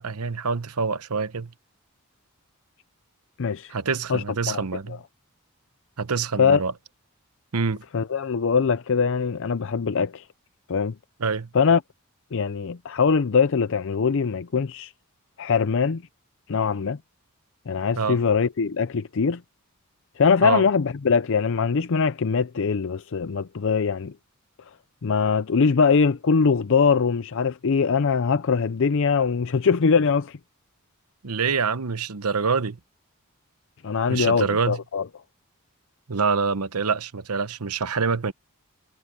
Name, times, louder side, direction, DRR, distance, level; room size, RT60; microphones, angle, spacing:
voice 1, 0.0-1.5 3.7-5.0 6.0-6.7 7.5-7.8 11.2-11.5 18.0-18.2 20.4-20.6 31.2-32.8 34.1-34.8 36.1-38.3, right 5 dB, 90° right, 1.0 m, -26 dB
voice 2, 3.4-3.7 4.1-4.6 4.9-5.0 6.4-6.6 7.9-10.2 10.7-10.9 11.5-11.8 12.3-14.9 15.4-16.0 16.5-17.0 17.7-19.4 20.2-24.1 25.0-30.4 33.8-35.0, left 5 dB, 60° left, 0.5 m, -22 dB
head